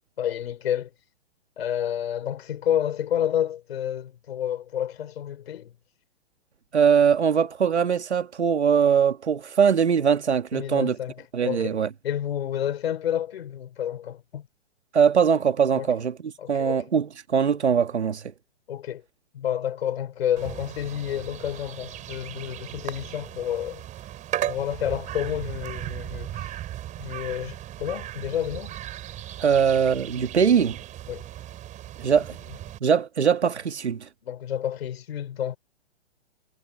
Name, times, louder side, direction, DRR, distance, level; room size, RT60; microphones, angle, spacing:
voice 1, 0.2-0.9 1.6-5.7 10.5-14.5 15.7-15.9 16.4-16.9 18.7-19.0 19.3-23.8 24.4-26.6 27.0-28.7 29.5-29.6 31.1-31.3 34.2-35.6, left 10 dB, 65° left, 3.9 m, -30 dB
voice 2, 6.7-11.0 11.3-11.9 14.9-16.2 16.5-18.3 29.4-30.8 32.0-32.4 32.8-34.1, right 7 dB, 90° right, 2.1 m, -21 dB
sound 1, 20.4-32.8, right 13 dB, 20° right, 6.4 m, -37 dB
hypercardioid pair, 140°, 33 cm